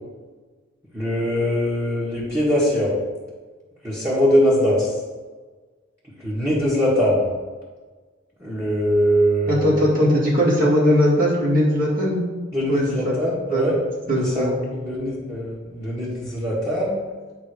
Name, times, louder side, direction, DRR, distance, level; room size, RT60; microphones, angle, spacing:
voice 1, 0.9-2.9 3.8-4.9 6.2-7.3 8.4-9.9 12.5-17.0, equal, 15° right, -10 dB, 1.7 m, -22 dB
voice 2, 9.5-12.2 12.7-12.8 13.5-13.7 14.1-14.5, equal, 45° right, -5 dB, 2.2 m, -19 dB
8.3 x 3.7 x 4.8 m, 1.4 s
head